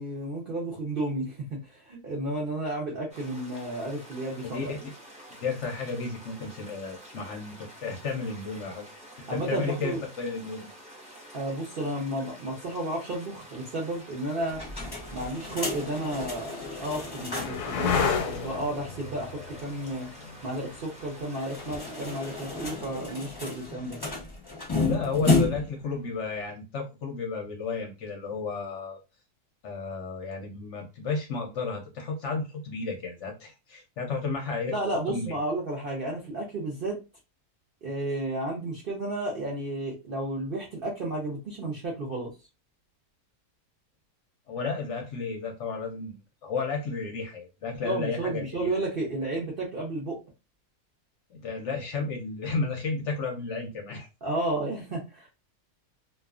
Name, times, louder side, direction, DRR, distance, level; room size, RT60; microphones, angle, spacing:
voice 1, 0.0-1.4 1.6-4.7 9.3-10.0 11.3-14.6 15.1-20.1 20.4-24.0 34.7-37.0 37.8-42.3 47.8-50.2 54.2-55.3, right 1 dB, 60° right, -2 dB, 0.5 m, -32 dB
sound 1, 3.1-22.8, equal, 10° right, 0.3 m, -48 dB
voice 2, 4.4-4.9 5.4-8.9 9.3-10.7 24.8-29.0 29.6-34.7 35.1-35.4 44.5-46.1 46.4-48.7 51.3-54.1, left 4 dB, 65° left, 1 dB, 0.8 m, -33 dB
sound 2, 14.5-17.7 18.1-18.2 18.4-18.5 21.3-25.8, left 3 dB, 20° left, 0.7 m, -31 dB
sound 3, 14.7-14.8 15.6-23.2 25.6-26.1, left 6 dB, 90° left, 1.1 m, -34 dB
2.4 x 2.3 x 2.3 m, 0.28 s
omnidirectional pair, 1.6 m